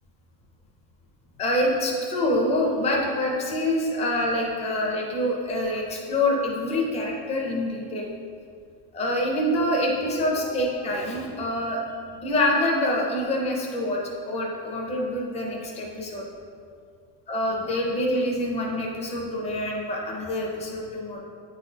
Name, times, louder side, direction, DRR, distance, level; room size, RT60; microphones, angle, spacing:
voice 1, 1.4-8.1 8.9-11.8 12.2-16.2 17.3-21.2, left 1 dB, 15° left, -2 dB, 0.5 m, -26 dB
8.7 x 4.0 x 2.7 m, 2.3 s
cardioid pair, 155°, 50 cm